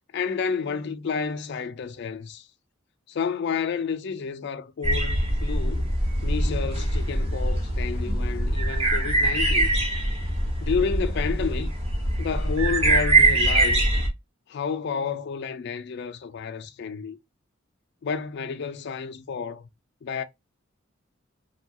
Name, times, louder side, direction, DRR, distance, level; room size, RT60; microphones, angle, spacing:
voice 1, 0.1-2.5 3.1-5.9 6.2-9.8 10.6-11.8 12.2-13.9 14.5-17.2 18.0-19.7 20.0-20.2, left 5 dB, 55° left, 0.4 m, -30 dB
sound 1, 4.8-14.1, right 2 dB, 30° right, 1.0 m, -23 dB
2.7 x 2.3 x 2.7 m
head